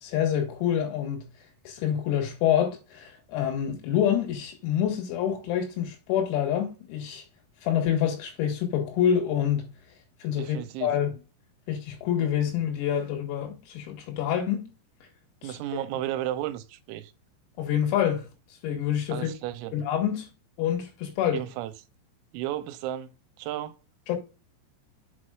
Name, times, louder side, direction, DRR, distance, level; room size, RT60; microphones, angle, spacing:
voice 1, 0.0-1.3 1.7-7.2 7.6-9.7 10.2-11.2 11.7-14.7 15.4-15.6 17.6-18.3 18.6-19.3 19.7-20.3 20.6-21.4 24.1-24.2, left 9 dB, 85° left, 4.6 m, -27 dB
voice 2, 10.4-10.9 15.4-17.1 19.1-19.7 21.3-21.7 22.3-23.1 23.4-23.8, right 13 dB, 90° right, 3.3 m, -33 dB
7.8 x 6.1 x 2.4 m
omnidirectional pair, 6.0 m